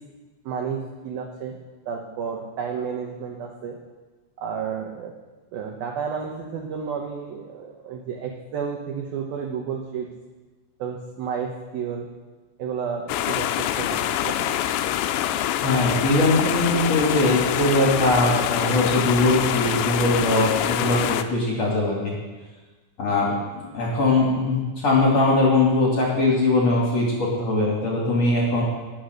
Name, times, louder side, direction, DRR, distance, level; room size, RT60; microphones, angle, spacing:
voice 1, 0.4-1.6 1.9-3.8 4.4-5.1 5.5-10.1 10.8-12.1 12.6-14.6, right 6 dB, 75° right, 1 dB, 2.1 m, -31 dB
sound 1, 13.1-21.2, left 12 dB, 90° left, 2.5 m, -25 dB
voice 2, 15.6-22.1 23.0-28.6, left 2 dB, 40° left, -3 dB, 2.6 m, -21 dB
19.0 x 7.3 x 6.5 m, 1.3 s
omnidirectional pair, 5.8 m